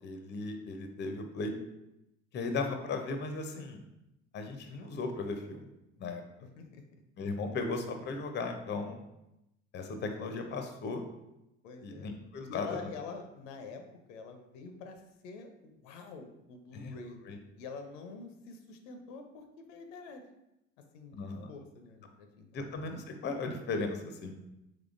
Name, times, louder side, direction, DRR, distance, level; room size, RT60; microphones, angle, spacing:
voice 1, 0.0-1.5 2.3-3.8 4.3-5.7 6.0-6.2 7.2-9.0 9.7-11.0 11.8-12.7 16.7-16.9 17.3-17.4 21.1-21.5 22.5-24.3, left 3 dB, 30° left, 5 dB, 0.5 m, -36 dB
voice 2, 6.4-6.8 11.6-12.1 12.4-13.8 14.1-17.2 17.6-20.2 20.9-21.2 21.5-22.7, left 4 dB, 80° left, 6 dB, 0.6 m, -46 dB
3.6 x 3.2 x 2.5 m, 0.89 s
hypercardioid pair, 75°, 37 cm